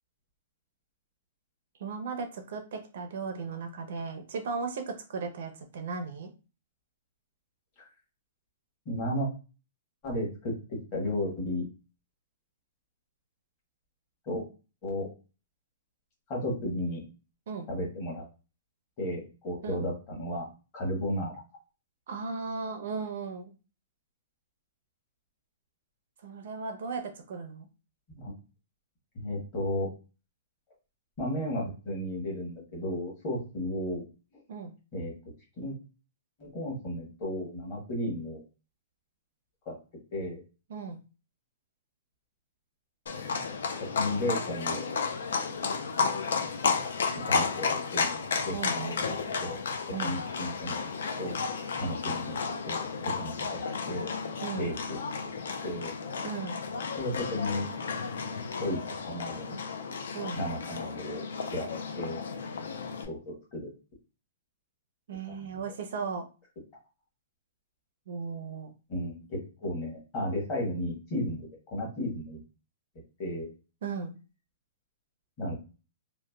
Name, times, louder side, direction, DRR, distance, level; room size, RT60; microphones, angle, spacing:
voice 1, 1.8-6.3 17.5-17.7 19.6-19.8 22.1-23.5 26.2-27.7 34.5-34.7 40.7-41.0 48.5-49.0 49.9-50.2 54.4-54.7 56.2-56.6 60.1-60.4 65.1-66.3 68.1-68.7 73.8-74.1, right 4 dB, 50° right, 6 dB, 0.4 m, -36 dB
voice 2, 8.8-9.3 10.0-10.5 10.9-11.7 14.3-14.4 14.8-15.1 16.3-17.0 17.7-18.2 19.0-20.5 20.7-21.3 28.1-28.3 29.1-29.9 31.2-34.0 34.3-34.4 34.9-35.1 35.6-35.7 36.4-38.4 39.7-39.8 40.1-40.4 43.9-44.8 47.3-48.1 48.4-49.6 50.0-50.7 51.2-51.4 51.8-52.8 53.2-53.6 53.9-54.1 54.6-55.0 55.6-55.9 56.9-57.7 58.6-58.8 59.0-59.6 60.4-61.2 61.5-62.2 63.1-63.7 65.4-65.5 68.9-72.4 73.2-73.5 75.4-75.6, left 1 dB, 25° left, -4 dB, 1.0 m, -33 dB
Livestock farm animals working animals, 43.1-63.1, left 5 dB, 80° left, 0.4 m, -33 dB
2.9 x 2.1 x 2.2 m, 0.33 s
hypercardioid pair, 180°, 0 cm